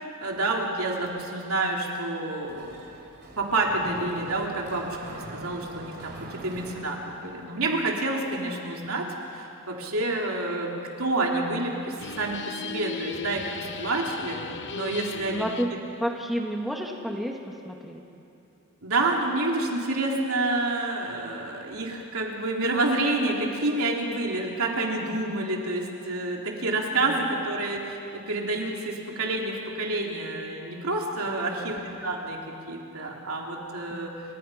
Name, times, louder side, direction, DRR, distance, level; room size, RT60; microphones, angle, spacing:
voice 1, 0.2-2.8 3.4-10.7 11.0-14.4 14.7-15.5 18.8-32.4 32.7-34.1, right 2 dB, 65° right, -1 dB, 3.6 m, -28 dB
Mechanisms, 2.4-7.6, right 2 dB, 50° right, 3.4 m, -43 dB
sound 1, 12.0-15.8, left 6 dB, 55° left, 0.8 m, -37 dB
voice 2, 15.3-15.7 16.0-17.4 17.7-18.0 31.3-31.7 33.9-34.2, equal, ahead, 0 dB, 1.8 m, -31 dB
29.5 x 25.0 x 5.8 m, 2.7 s
head